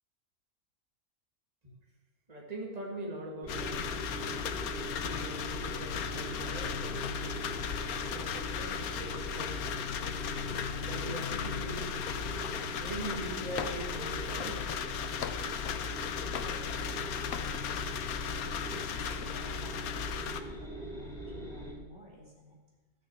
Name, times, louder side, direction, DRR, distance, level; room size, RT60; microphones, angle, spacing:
voice 1, 2.3-4.1 4.9-7.4 8.1-9.6 10.8-12.0 12.6-14.8, right 2 dB, 25° right, -2 dB, 2.3 m, -42 dB
sound 1, 3.4-21.7, right 1 dB, ahead, 3.2 m, -42 dB
sound 2, 3.5-20.4, left 8 dB, 75° left, 1.2 m, -36 dB
sound 3, 13.6-14.0 14.4-15.9 16.3-17.0 17.3-17.6, left 8 dB, 60° left, 0.8 m, -41 dB
voice 2, 16.4-18.2 18.7-22.6, equal, 40° right, -3 dB, 3.5 m, -54 dB
13.5 x 6.5 x 7.7 m, 1.1 s
omnidirectional pair, 1.6 m